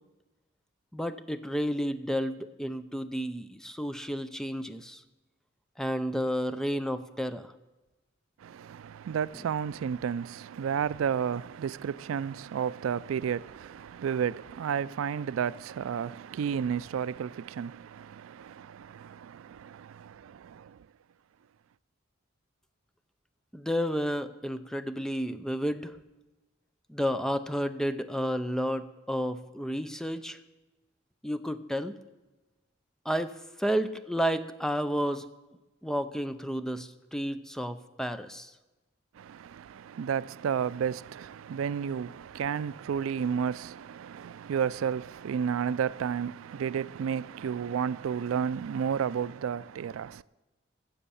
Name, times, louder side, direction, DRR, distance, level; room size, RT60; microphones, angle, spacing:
voice 1, 0.9-5.0 5.8-7.5 23.5-26.0 26.9-30.4 31.2-32.0 33.1-35.3 35.8-38.5, equal, 5° left, 0.5 m, -31 dB
voice 2, 8.4-20.8 39.2-50.2, right 7 dB, 90° right, 0.3 m, -32 dB
15.5 x 7.2 x 7.0 m
head